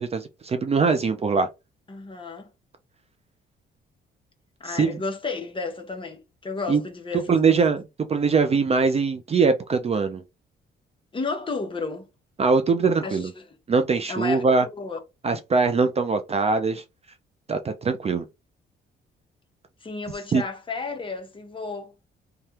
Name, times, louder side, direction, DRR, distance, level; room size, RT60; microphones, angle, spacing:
voice 1, 0.0-1.5 4.7-5.0 6.7-6.8 7.3-7.8 8.1-10.2 12.4-13.3 13.7-14.7 15.2-16.8 17.5-18.3 20.3-20.4, right 4 dB, 30° right, 0.5 m, -22 dB
voice 2, 1.9-2.5 4.6-7.6 11.1-12.1 13.0-13.5 14.1-15.0 19.8-21.9, left 4 dB, 25° left, 0.9 m, -32 dB
3.2 x 2.3 x 2.8 m
cardioid pair, 90°, 20 cm